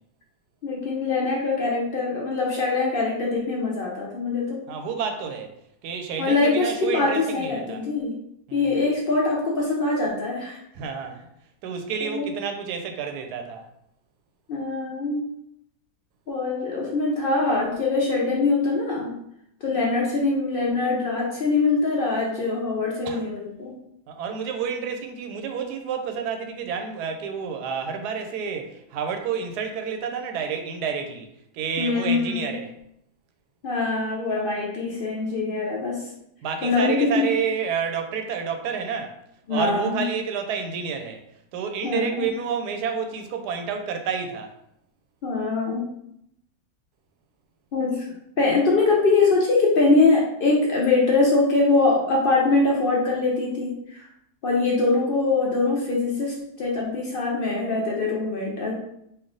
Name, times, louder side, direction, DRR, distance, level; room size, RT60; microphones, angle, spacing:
voice 1, 0.6-4.6 6.2-8.1 8.5-10.6 12.0-12.3 14.5-15.2 16.3-19.2 19.6-23.7 31.8-32.5 33.6-36.0 36.6-37.0 39.5-40.0 41.8-42.3 45.2-45.9 47.7-48.1 48.4-54.1 54.4-58.7, left 3 dB, 70° left, -3 dB, 0.5 m, -23 dB
voice 2, 4.7-5.5 5.8-7.8 8.5-8.8 10.7-11.3 11.6-13.7 23.0-23.2 24.1-31.3 31.5-32.7 36.4-39.2 39.5-41.2 41.5-44.5, right 6 dB, 90° right, 5 dB, 1.1 m, -29 dB
3.3 x 2.5 x 3.7 m, 0.77 s
omnidirectional pair, 1.7 m